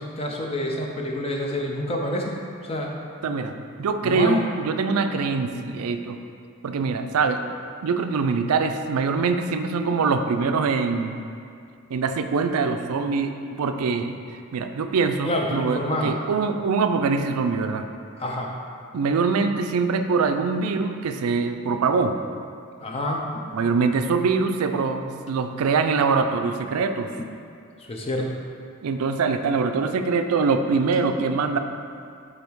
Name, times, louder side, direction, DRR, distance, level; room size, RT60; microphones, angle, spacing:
voice 1, 0.0-2.9 4.0-4.5 15.2-16.2 18.2-18.5 22.8-23.5 27.8-28.3, left 1 dB, 25° left, 0 dB, 0.6 m, -27 dB
voice 2, 3.2-3.5 3.8-6.2 6.6-7.4 7.8-11.2 11.9-17.9 18.9-22.2 23.5-27.1 28.8-31.6, right 4 dB, 85° right, 7 dB, 0.4 m, -23 dB
5.3 x 4.1 x 4.6 m, 2.4 s
head